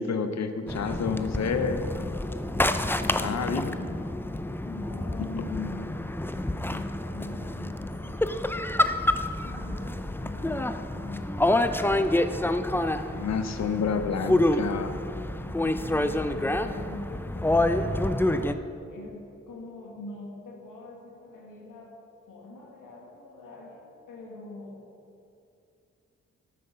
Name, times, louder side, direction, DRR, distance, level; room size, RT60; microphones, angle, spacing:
voice 1, 0.0-2.2 3.0-3.8 5.2-5.7 13.1-15.0, left 5 dB, 55° left, 9 dB, 0.9 m, -30 dB
sound 1, 0.7-18.5, left 1 dB, 5° left, 0.6 m, -28 dB
voice 2, 3.7-8.2 9.4-12.1 15.4-21.9 22.3-24.9, left 2 dB, 80° left, -2 dB, 1.8 m, -44 dB
10.0 x 7.6 x 5.5 m, 2.6 s
supercardioid pair, 40°, 32 cm